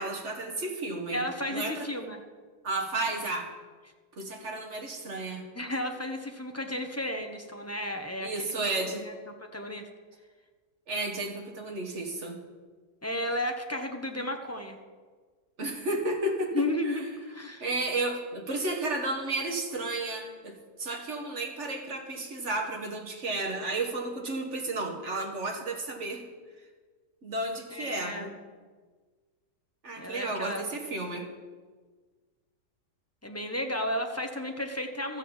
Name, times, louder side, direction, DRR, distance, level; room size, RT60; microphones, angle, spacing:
voice 1, 0.0-1.2 1.5-1.9 2.6-3.5 4.1-5.5 8.2-9.1 10.9-12.4 15.6-17.0 17.6-26.2 27.2-28.3 29.8-31.3, right 2 dB, 40° right, 2 dB, 2.1 m, -32 dB
voice 2, 1.1-2.2 5.5-8.5 9.1-9.9 13.0-14.8 16.5-17.0 17.3-17.6 27.7-28.3 30.0-30.7 33.2-35.2, left 1 dB, 10° left, 4 dB, 0.8 m, -33 dB
14.0 x 7.7 x 7.4 m, 1.5 s
omnidirectional pair, 1.9 m